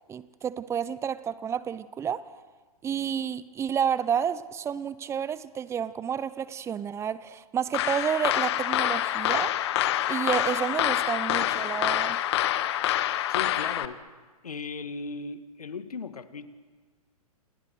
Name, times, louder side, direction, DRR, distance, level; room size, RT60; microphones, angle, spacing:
voice 1, 0.1-2.3 2.8-9.5 10.1-12.2, right 8 dB, 15° right, 0.9 m, -30 dB
sound 1, 7.7-13.9, left 13 dB, 45° left, 1.4 m, -26 dB
voice 2, 13.3-14.0 14.4-16.5, left 4 dB, 75° left, 2.1 m, -37 dB
28.5 x 28.5 x 6.6 m
figure-of-eight pair, 120°, 19 cm